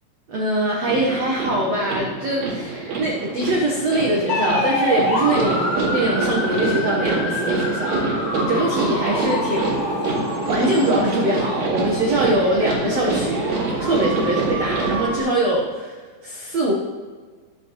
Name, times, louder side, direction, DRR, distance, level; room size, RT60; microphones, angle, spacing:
voice 1, 0.3-8.0 8.5-9.8 10.5-16.0 16.2-16.7, right 1 dB, 80° right, -2 dB, 1.4 m, -23 dB
sound 1, 0.9-15.2, right 3 dB, 45° right, 3.0 m, -26 dB
sound 2, 4.3-15.0, left 2 dB, 65° left, 1.1 m, -28 dB
19.5 x 7.2 x 3.1 m, 1.5 s
omnidirectional pair, 5.2 m